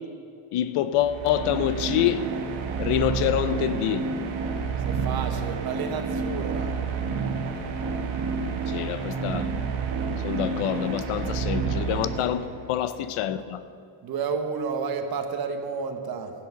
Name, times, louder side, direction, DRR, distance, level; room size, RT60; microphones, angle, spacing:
voice 1, 0.5-2.3 2.8-4.1 8.7-9.5 10.2-13.6, left 11 dB, 90° left, 0.8 m, -26 dB
sound 1, 0.9-12.7, right 5 dB, 65° right, 1.5 m, -29 dB
voice 2, 4.8-6.7 12.2-12.3 14.0-16.3, right 5 dB, 45° right, 1.1 m, -31 dB
14.5 x 7.8 x 5.9 m
cardioid pair, 175°, 50 cm